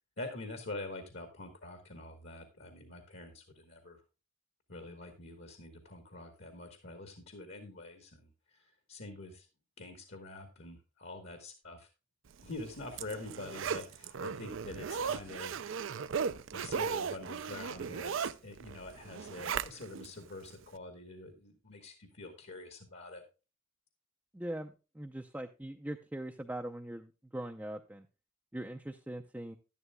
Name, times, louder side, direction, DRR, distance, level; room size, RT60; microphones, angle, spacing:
voice 1, 0.2-4.0 4.7-9.5 9.8-11.9 12.4-15.5 16.5-23.2, left 2 dB, 60° left, 7 dB, 1.4 m, -46 dB
Zipper (clothing), 12.5-20.1 20.5-20.6, right 6 dB, 70° right, 0.5 m, -37 dB
voice 2, 24.3-28.1 28.5-29.6, right 1 dB, 10° right, 3 dB, 0.5 m, -41 dB
11.0 x 11.0 x 2.2 m, 0.30 s
head